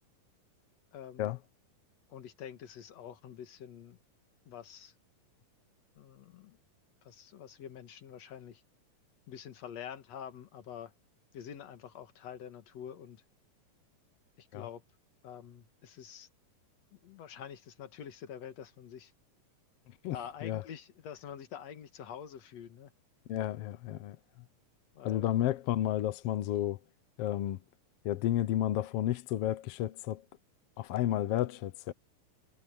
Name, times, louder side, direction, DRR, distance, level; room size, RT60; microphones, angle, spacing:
voice 1, 0.9-1.3 2.1-4.0 4.5-4.9 6.0-6.6 7.0-8.6 9.3-10.9 11.3-13.2 14.4-14.8 15.2-16.3 16.9-19.1 20.1-22.9 24.9-25.3, left 8 dB, 60° left, 2.5 m, -46 dB
voice 2, 23.3-24.2 25.0-26.8 27.2-27.6 28.0-30.2 30.8-31.9, left 13 dB, 75° left, 1.4 m, -31 dB
omnidirectional pair, 3.7 m